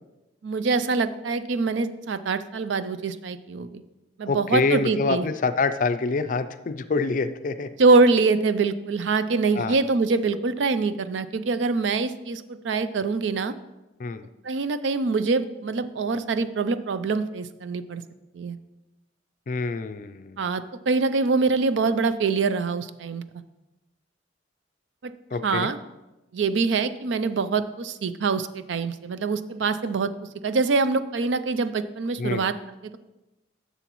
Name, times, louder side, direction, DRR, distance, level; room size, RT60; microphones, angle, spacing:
voice 1, 0.4-3.8 4.2-5.3 7.8-13.5 14.4-18.0 18.3-18.6 20.4-23.2 25.0-25.1 25.4-25.8 26.3-30.1 30.4-32.5, right 4 dB, 80° right, 12 dB, 0.4 m, -24 dB
voice 2, 4.3-7.7 9.6-9.8 14.0-14.3 19.5-20.4 25.3-25.7 32.2-32.5, left 3 dB, 45° left, 11 dB, 0.4 m, -26 dB
11.0 x 6.9 x 3.0 m, 1.0 s
head